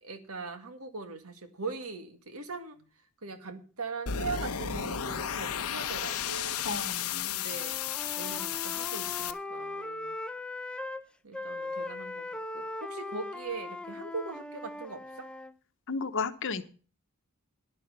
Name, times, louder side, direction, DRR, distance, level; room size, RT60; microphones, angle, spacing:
voice 1, 0.0-2.8 3.2-6.7 7.3-7.8 8.2-10.2 11.2-15.3, right 4 dB, 75° right, 8 dB, 1.9 m, -41 dB
sound 1, 4.1-9.3, left 8 dB, 80° left, 0.9 m, -33 dB
voice 2, 6.6-7.3 15.9-16.6, left 4 dB, 60° left, 10 dB, 1.1 m, -33 dB
Wind instrument woodwind instrument, 7.5-11.0 11.3-15.6, left 2 dB, 5° left, 0.6 m, -39 dB
11.5 x 11.0 x 5.4 m, 0.39 s
head